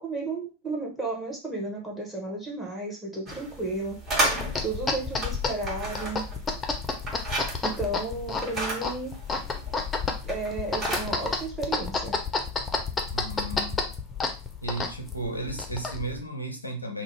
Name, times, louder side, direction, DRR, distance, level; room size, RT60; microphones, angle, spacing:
voice 1, 0.0-4.0 4.6-6.3 7.6-9.2 10.2-12.2, right 2 dB, 10° right, -2 dB, 0.8 m, -33 dB
sound 1, 3.3-11.5, right 2 dB, 30° right, 1.1 m, -34 dB
sound 2, 4.1-16.2, left 4 dB, 15° left, 0.5 m, -31 dB
voice 2, 13.1-13.9 14.6-17.0, right 2 dB, 85° left, 5 dB, 0.5 m, -34 dB
2.5 x 2.0 x 3.1 m, 0.32 s
figure-of-eight pair, 90°, 0 cm